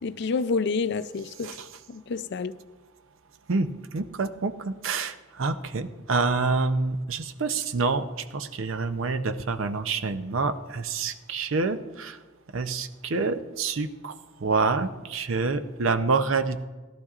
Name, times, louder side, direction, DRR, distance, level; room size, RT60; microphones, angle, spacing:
voice 1, 0.0-1.5 1.9-2.5, left 4 dB, 60° left, 0.4 m, -28 dB
voice 2, 3.5-8.1 8.3-12.2 12.5-14.1 14.4-16.7, right 4 dB, 80° right, 0.7 m, -27 dB
17.5 x 12.0 x 2.5 m
head